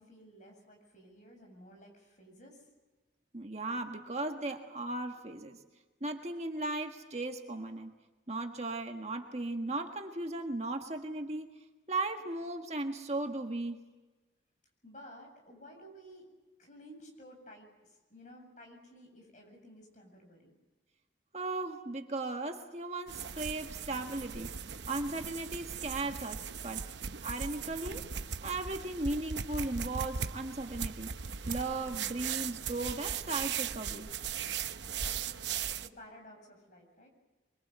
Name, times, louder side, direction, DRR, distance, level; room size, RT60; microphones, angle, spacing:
voice 1, 0.0-2.7 14.8-16.3 16.6-20.6 35.0-37.1, equal, 40° left, 2 dB, 7.6 m, -54 dB
voice 2, 3.3-5.6 6.0-7.9 8.3-11.6 11.9-13.9 21.3-24.5 24.9-26.8 27.2-28.1 28.4-31.1 31.5-34.1, right 2 dB, 35° right, 4 dB, 1.6 m, -36 dB
sound 1, 23.1-35.9, right 7 dB, 75° right, 0.8 m, -38 dB
25.0 x 23.5 x 8.1 m, 1.2 s
head